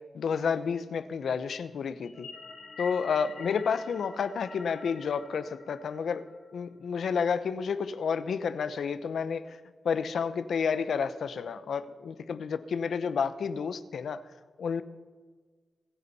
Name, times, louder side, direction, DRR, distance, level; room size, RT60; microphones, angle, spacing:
voice 1, 0.1-2.3 2.8-6.3 6.5-9.6 9.8-14.2 14.6-14.8, left 6 dB, 90° left, 13 dB, 0.8 m, -30 dB
sound 1, 2.0-6.6, left 4 dB, 60° left, 1.6 m, -46 dB
26.5 x 9.9 x 4.2 m, 1.5 s
wide cardioid pair, 165°, 0 cm